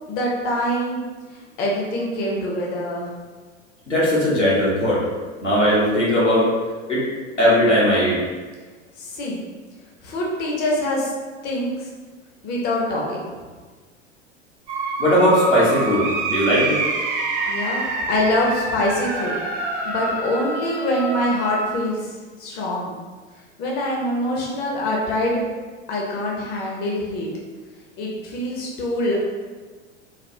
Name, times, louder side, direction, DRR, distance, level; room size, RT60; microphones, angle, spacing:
voice 1, 0.1-1.0 1.3-3.1 9.0-9.4 10.0-11.1 11.4-11.9 12.4-13.3 17.5-19.3 19.8-22.9 23.6-25.4 25.9-27.3 28.0-29.1, left 1 dB, 30° left, -3 dB, 0.6 m, -24 dB
voice 2, 3.9-5.0 5.4-6.5 6.9-7.0 7.4-8.2 15.0-16.8, equal, 85° left, -8 dB, 1.1 m, -18 dB
sound 1, 14.7-21.7, right 2 dB, 20° right, 0.4 m, -26 dB
3.4 x 2.2 x 2.7 m, 1.4 s
figure-of-eight pair, 85°, 35 cm